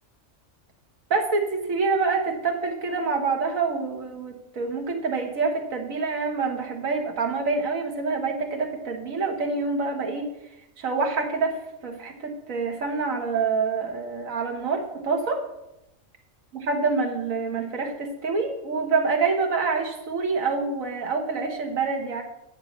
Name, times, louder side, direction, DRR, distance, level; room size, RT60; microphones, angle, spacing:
voice 1, 1.1-10.3 10.8-15.4 16.5-22.2, right 4 dB, 90° right, 3 dB, 1.8 m, -26 dB
9.5 x 4.6 x 7.1 m, 0.88 s
omnidirectional pair, 1.4 m